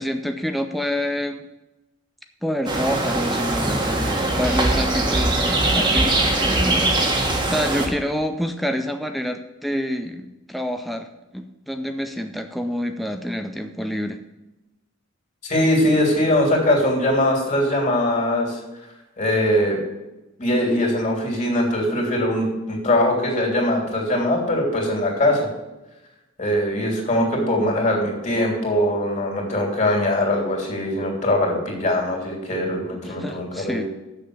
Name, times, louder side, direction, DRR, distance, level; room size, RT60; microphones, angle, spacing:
voice 1, 0.0-1.4 2.4-11.1 11.3-14.2 33.0-33.8, equal, ahead, 6 dB, 0.5 m, -27 dB
sound 1, 2.7-7.9, right 2 dB, 25° right, 1.4 m, -21 dB
voice 2, 15.4-18.6 19.2-19.8 20.4-25.5 26.4-33.8, left 1 dB, 35° left, 0 dB, 2.9 m, -21 dB
7.5 x 6.6 x 7.9 m, 1.0 s
head